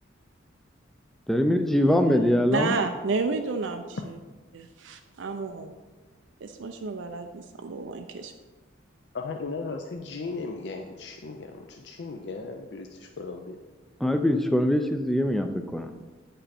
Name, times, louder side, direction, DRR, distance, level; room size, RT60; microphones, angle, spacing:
voice 1, 1.3-2.8 14.0-15.9, left 1 dB, ahead, 6 dB, 0.4 m, -23 dB
voice 2, 1.8-4.2 4.5-5.7 6.4-8.3, right 4 dB, 80° right, 6 dB, 0.5 m, -31 dB
voice 3, 9.1-13.6, left 4 dB, 60° left, 3 dB, 0.5 m, -36 dB
8.8 x 5.4 x 4.2 m, 1.3 s
head